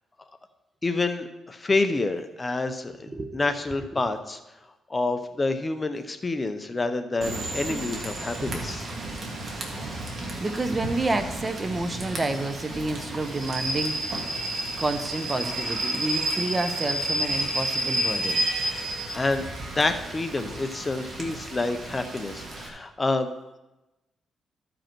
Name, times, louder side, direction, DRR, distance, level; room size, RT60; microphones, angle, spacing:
voice 1, 0.8-4.4 4.9-8.9 19.1-23.3, left 3 dB, 25° left, 8 dB, 0.6 m, -28 dB
voice 2, 3.1-3.4 10.4-14.3 14.8-18.4, right 2 dB, 20° right, 9 dB, 0.7 m, -29 dB
Rain / Train, 7.2-22.7, right 1 dB, 45° right, 1.7 m, -31 dB
13.5 x 5.2 x 4.4 m, 1.0 s
cardioid pair, 115°, 0 cm